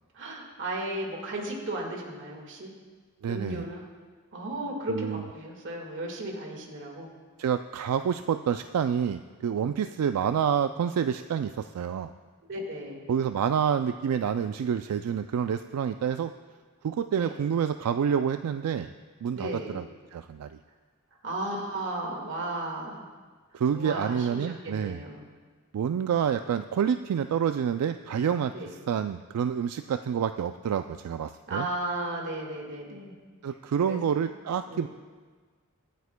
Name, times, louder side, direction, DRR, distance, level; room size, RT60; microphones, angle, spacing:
voice 1, 0.1-2.7 3.3-3.8 4.3-7.1 12.5-13.0 17.1-17.3 19.3-19.8 21.2-23.0 23.7-25.3 28.5-28.7 31.5-33.1 33.9-34.2 34.7-34.9, right 1 dB, 60° right, 0 dB, 1.8 m, -35 dB
voice 2, 3.2-3.7 4.9-5.3 7.4-12.1 13.1-16.3 16.8-18.9 19.2-20.6 23.5-25.0 25.7-31.7 33.4-34.9, right 8 dB, 85° right, 9 dB, 0.3 m, -28 dB
23.5 x 9.3 x 2.2 m, 1.5 s
head